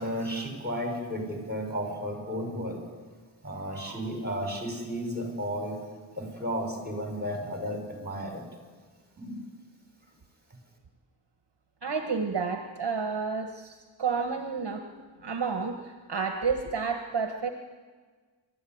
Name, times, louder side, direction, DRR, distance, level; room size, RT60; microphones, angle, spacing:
voice 1, 0.0-2.8 3.4-5.8 6.2-8.4 9.2-9.4, equal, 20° right, 2 dB, 6.3 m, -33 dB
voice 2, 11.8-14.8 15.2-17.5, right 5 dB, 55° right, 5 dB, 1.5 m, -30 dB
28.5 x 14.0 x 9.5 m, 1.5 s
wide cardioid pair, 75°, 47 cm